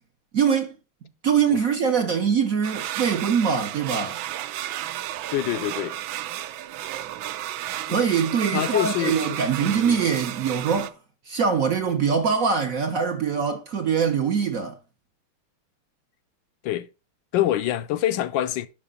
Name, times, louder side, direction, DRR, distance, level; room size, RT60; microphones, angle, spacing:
voice 1, 0.3-0.7 1.2-4.2 7.9-10.9 11.3-14.8, right 6 dB, 55° right, 1.0 m, -23 dB
sound 1, 2.6-10.9, right 13 dB, 75° right, 1.3 m, -33 dB
voice 2, 5.3-6.0 8.5-10.0 16.6-16.9 17.3-18.7, left 13 dB, 75° left, 1.1 m, -26 dB
10.0 x 6.0 x 3.8 m
omnidirectional pair, 2.4 m